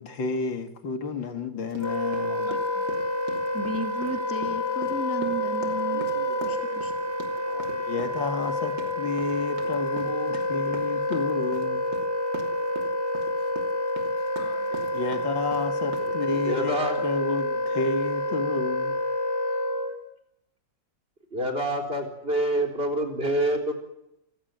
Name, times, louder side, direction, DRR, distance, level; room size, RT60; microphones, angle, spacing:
voice 1, 0.0-2.8 5.9-11.8 14.4-19.0, left 4 dB, 85° left, 8 dB, 2.8 m, -32 dB
sound 1, 1.7-16.6, right 4 dB, 70° right, 3.4 m, -42 dB
Wind instrument woodwind instrument, 1.8-20.0, left 1 dB, 10° left, 4.0 m, -28 dB
voice 2, 3.5-6.1 6.4-6.9, right 1 dB, 5° right, 5 dB, 1.8 m, -34 dB
voice 3, 16.4-17.0 21.3-23.7, right 1 dB, 30° right, 4 dB, 4.3 m, -26 dB
27.5 x 16.0 x 9.5 m, 0.83 s
omnidirectional pair, 2.0 m